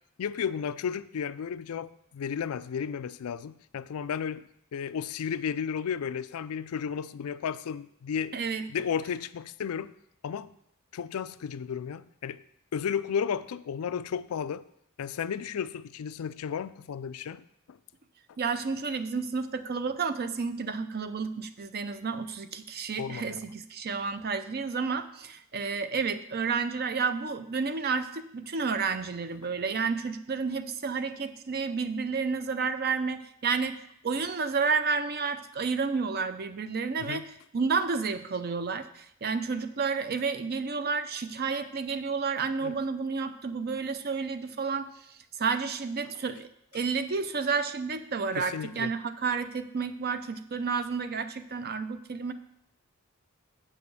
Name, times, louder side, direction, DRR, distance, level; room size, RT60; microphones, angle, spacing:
voice 1, 0.2-4.4 4.7-8.3 8.7-9.9 10.2-10.5 10.9-12.4 12.7-14.6 15.0-17.8 23.0-23.4 37.0-37.2 42.6-42.7 48.4-48.9, left 7 dB, 80° left, 15 dB, 0.4 m, -33 dB
voice 2, 8.3-8.7 18.4-44.9 45.4-52.3, right 5 dB, 45° right, 11 dB, 0.6 m, -31 dB
7.9 x 5.0 x 6.7 m, 0.73 s
head